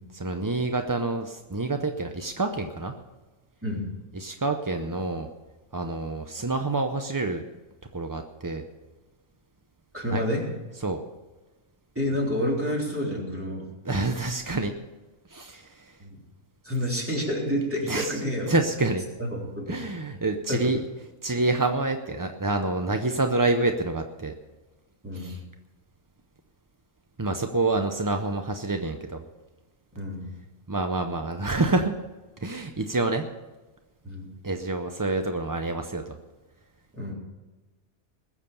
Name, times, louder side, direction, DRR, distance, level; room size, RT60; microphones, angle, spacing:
voice 1, 0.2-2.9 4.1-5.3 5.7-7.4 7.9-8.7 10.1-10.2 10.8-11.0 13.9-14.7 15.3-16.0 17.9-19.1 19.7-20.8 21.2-24.3 25.1-25.4 27.2-29.2 30.7-31.9 32.4-33.2 34.4-36.1, right 2 dB, 25° right, 6 dB, 0.4 m, -27 dB
voice 2, 9.9-10.5 12.0-13.7 16.0-16.2 16.6-18.5 19.2-19.8 20.5-20.7 25.0-25.4 30.0-30.4 34.0-34.3 36.9-37.1, equal, 10° right, -3 dB, 3.6 m, -29 dB
20.5 x 7.3 x 6.8 m, 1.2 s
omnidirectional pair, 1.4 m